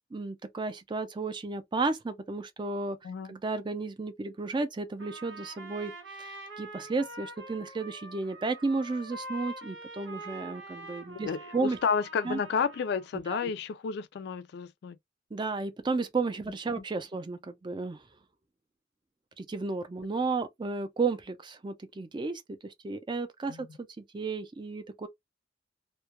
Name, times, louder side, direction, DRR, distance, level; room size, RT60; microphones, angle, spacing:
voice 1, 0.1-3.0 3.3-5.9 6.2-11.8 12.2-12.4 13.1-13.5 15.3-18.0 19.4-25.1, right 3 dB, 25° right, 0.4 m, -33 dB
Trumpet, 5.0-13.1, right 1 dB, 85° right, 1.1 m, -45 dB
voice 2, 11.3-15.0 23.5-23.7, left 6 dB, 60° left, 0.3 m, -31 dB
2.2 x 2.1 x 2.8 m
head